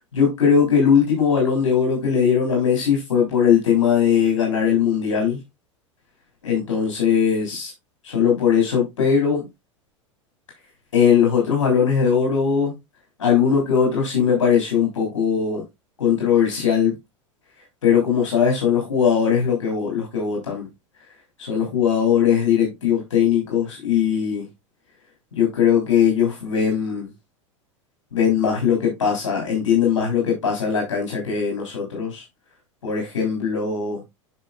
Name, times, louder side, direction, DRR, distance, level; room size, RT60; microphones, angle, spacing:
voice 1, 0.1-5.4 6.4-7.7 8.0-9.5 10.9-12.7 13.2-15.6 16.0-16.9 17.8-20.7 21.4-24.5 25.3-27.1 28.1-32.2 32.8-34.0, left 7 dB, 70° left, 3.2 m, -20 dB
9.1 x 6.0 x 2.4 m
figure-of-eight pair, 85°, 16 cm